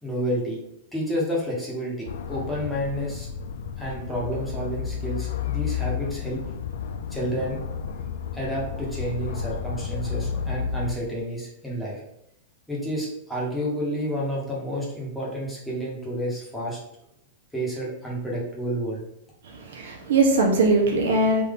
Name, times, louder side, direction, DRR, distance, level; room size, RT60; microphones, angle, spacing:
voice 1, 0.0-0.6 0.9-3.3 3.8-6.4 7.1-7.6 8.3-12.0 12.7-16.8 17.5-19.0, equal, ahead, -6 dB, 1.3 m, -30 dB
sound 1, 2.1-10.9, left 7 dB, 80° left, 0.4 m, -31 dB
voice 2, 19.4-21.4, right 2 dB, 80° right, 1 dB, 1.1 m, -21 dB
3.6 x 2.7 x 3.7 m, 0.80 s
supercardioid pair, 145°, 0 cm